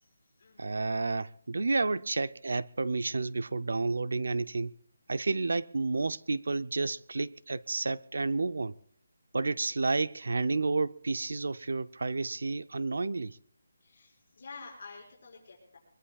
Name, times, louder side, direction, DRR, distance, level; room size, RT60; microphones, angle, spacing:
voice 1, 0.0-0.8 13.8-15.8, left 4 dB, 45° left, 5.5 m, -50 dB
voice 2, 0.6-4.7 5.1-8.7 9.3-13.4, right 3 dB, 70° right, 0.6 m, -31 dB
23.5 x 21.5 x 2.4 m
hypercardioid pair, 180°, 0 cm